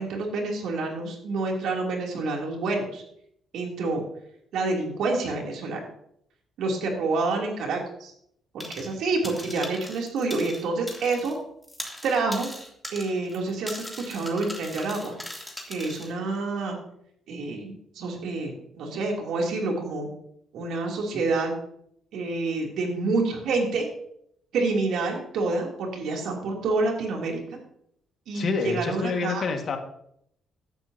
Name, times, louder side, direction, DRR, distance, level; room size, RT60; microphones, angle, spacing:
voice 1, 0.0-3.0 3.5-4.0 4.5-5.8 6.6-8.1 8.5-11.3 12.0-12.5 12.9-15.2 15.7-16.8 17.3-20.1 20.5-21.5 22.1-23.9 24.5-27.4 28.3-29.4, right 3 dB, 80° right, 0 dB, 3.0 m, -28 dB
sound 1, 8.6-9.0 9.2-11.4 11.6-16.1, equal, ahead, 2.9 m, -39 dB
voice 2, 28.3-29.8, left 4 dB, 55° left, 4 dB, 1.8 m, -27 dB
14.0 x 10.5 x 2.8 m, 0.72 s
cardioid pair, 90°, 0 cm